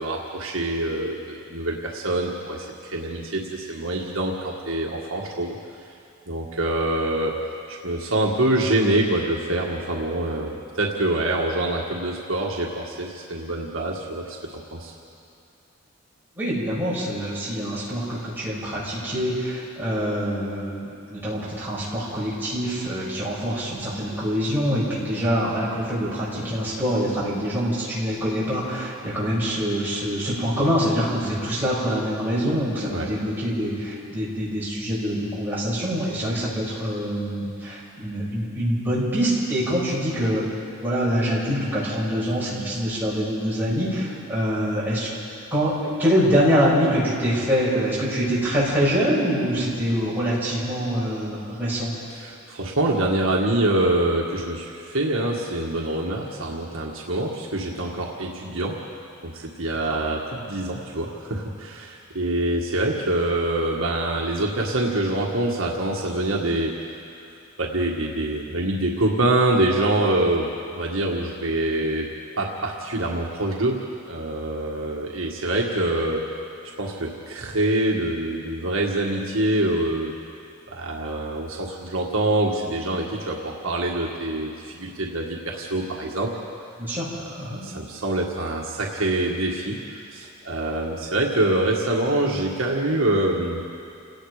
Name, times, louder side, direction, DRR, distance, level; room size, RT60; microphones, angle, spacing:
voice 1, 0.0-5.6 6.3-7.3 7.7-14.4 14.7-14.9 32.9-33.1 52.1-58.8 59.2-66.8 67.6-73.8 74.1-76.3 76.8-80.1 80.7-86.3 87.5-93.6, right 1 dB, 65° right, -2 dB, 1.8 m, -25 dB
voice 2, 16.4-40.5 40.8-45.1 45.5-51.9 59.8-60.0 86.8-87.1 87.4-87.6, equal, 10° right, -8 dB, 6.9 m, -25 dB
29.0 x 18.0 x 5.1 m, 2.5 s
head